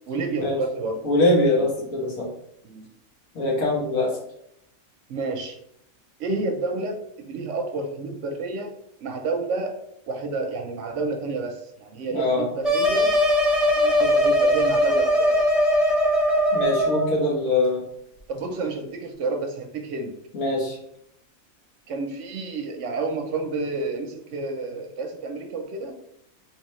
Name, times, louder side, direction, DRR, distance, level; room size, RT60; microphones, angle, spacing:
voice 1, 0.1-1.1 1.6-1.7 2.6-2.9 5.1-5.6 6.2-8.7 9.0-13.1 13.8-15.5 18.3-20.1 21.9-25.9, right 3 dB, 70° right, 4 dB, 0.8 m, -30 dB
voice 2, 1.0-2.3 3.3-4.2 12.1-12.4 16.5-17.8 20.3-20.8, left 2 dB, 70° left, -3 dB, 1.6 m, -23 dB
sound 1, 12.6-17.1, equal, ahead, 0.4 m, -20 dB
3.7 x 3.1 x 3.0 m, 0.74 s
omnidirectional pair, 1.4 m